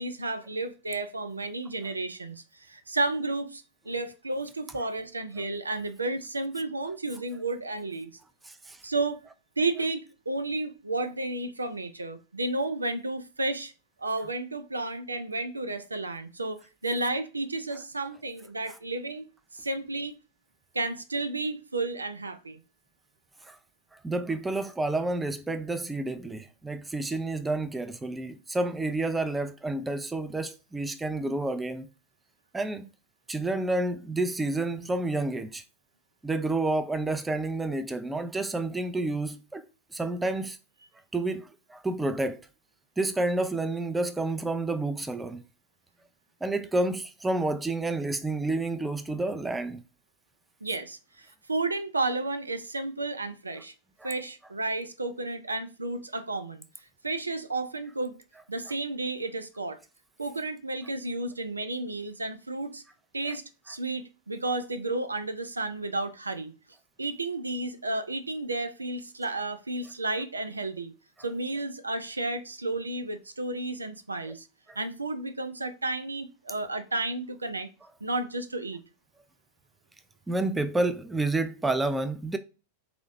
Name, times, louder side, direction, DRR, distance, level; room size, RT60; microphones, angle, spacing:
voice 1, 0.0-8.1 8.8-9.2 9.6-13.7 14.0-19.3 19.5-20.2 20.7-22.6 50.6-53.7 54.0-56.6 57.0-58.2 58.5-59.8 60.2-62.8 63.1-66.5 67.0-70.9 71.2-74.5 74.8-77.7 78.0-78.8, right 2 dB, 80° right, 0.4 m, -32 dB
voice 2, 8.5-8.8 23.5-23.6 24.0-31.9 32.5-32.9 33.3-35.6 36.2-39.7 39.9-40.6 41.1-42.4 43.0-45.4 46.4-49.8 54.0-54.1 74.7-74.8 80.3-82.4, right 2 dB, 10° right, 0.4 m, -29 dB
4.2 x 2.8 x 2.6 m
figure-of-eight pair, 90°, 0 cm